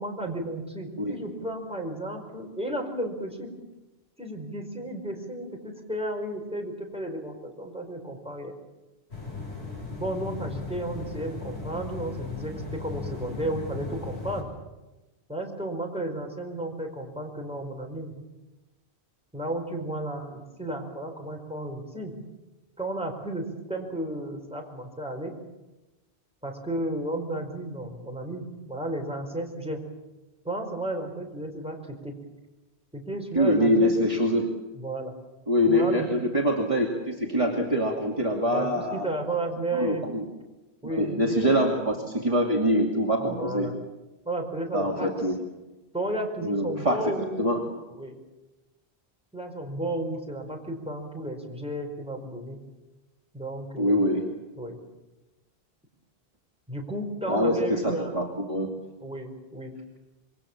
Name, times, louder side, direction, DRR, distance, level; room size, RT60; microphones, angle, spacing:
voice 1, 0.0-3.5 4.2-8.5 10.0-14.5 15.3-18.1 19.3-22.1 22.8-25.3 26.4-29.8 30.4-31.8 32.0-32.1 32.9-34.0 34.7-35.1 35.7-36.1 38.5-40.1 40.8-41.7 43.2-43.8 44.2-45.1 45.9-47.5 48.0-48.1 49.3-52.6 53.3-54.1 54.6-54.8 56.7-58.1 59.0-59.7, right 1 dB, 5° right, 1 dB, 4.8 m, -33 dB
sound 1, 9.1-14.4, left 4 dB, 75° left, 8.0 m, -37 dB
voice 2, 33.3-34.5 35.5-39.1 39.8-40.2 40.9-43.7 44.7-45.3 46.4-47.1 47.4-47.6 53.8-54.2 57.3-58.7, equal, 30° right, -2 dB, 2.8 m, -24 dB
26.5 x 23.0 x 7.5 m, 1.1 s
omnidirectional pair, 1.1 m